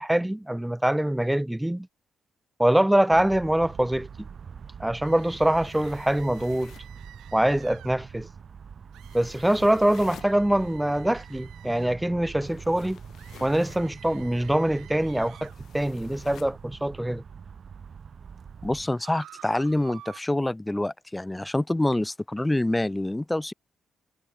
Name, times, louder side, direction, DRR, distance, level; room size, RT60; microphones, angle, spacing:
voice 1, 0.0-1.9 2.6-4.1 4.8-6.7 7.3-8.3 9.1-13.0 13.4-17.2, right 1 dB, 5° right, 1.1 m, -24 dB
sound 1, 3.1-18.9, right 6 dB, 45° right, 2.6 m, -44 dB
sound 2, 5.0-8.0 8.9-12.0 13.2-15.6 19.0-20.2, right 13 dB, 80° right, 6.1 m, -51 dB
sound 3, 5.3-7.0 9.0-10.4 12.4-13.9 15.4-16.6, left 10 dB, 65° left, 4.5 m, -51 dB
voice 2, 18.6-23.5, left 1 dB, 10° left, 1.5 m, -26 dB
cardioid pair, 90°, 0 cm